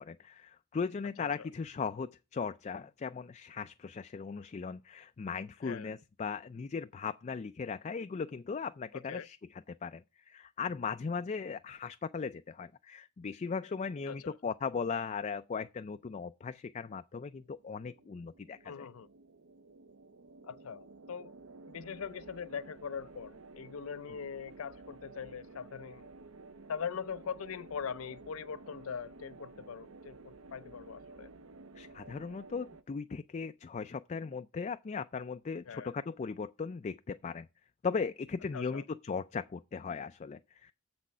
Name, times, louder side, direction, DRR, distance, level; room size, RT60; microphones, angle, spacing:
voice 1, 0.0-18.9 31.8-37.5 37.8-40.7, left 5 dB, 35° left, 0.3 m, -38 dB
voice 2, 1.2-1.5 5.6-5.9 8.9-9.3 14.1-14.4 18.6-19.1 20.4-21.3 21.7-26.1 26.7-31.3 35.7-35.9 38.5-38.8, left 6 dB, 85° left, 0.5 m, -41 dB
sound 1, 17.3-32.8, right 3 dB, 80° right, 0.8 m, -53 dB
7.4 x 6.1 x 5.5 m
head